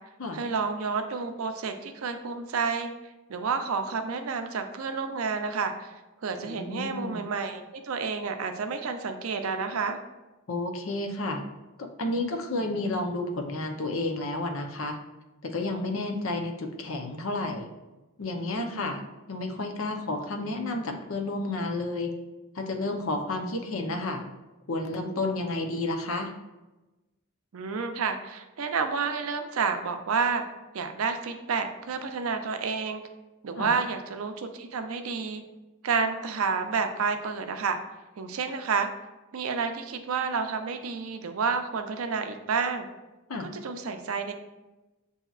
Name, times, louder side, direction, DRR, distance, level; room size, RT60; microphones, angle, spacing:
voice 1, 0.3-2.9 3.3-5.9 6.2-10.0 27.5-30.4 30.7-33.0 33.4-35.4 35.8-37.8 38.2-38.9 39.3-42.9 43.5-44.3, right 5 dB, 70° right, 7 dB, 0.5 m, -30 dB
voice 2, 6.4-7.2 10.5-11.4 11.8-15.0 15.4-17.7 18.2-19.0 19.3-22.1 22.5-24.2 24.7-26.3 33.6-33.7 43.3-43.5, left 2 dB, 65° left, 4 dB, 0.6 m, -31 dB
7.3 x 2.7 x 2.4 m, 1.1 s
head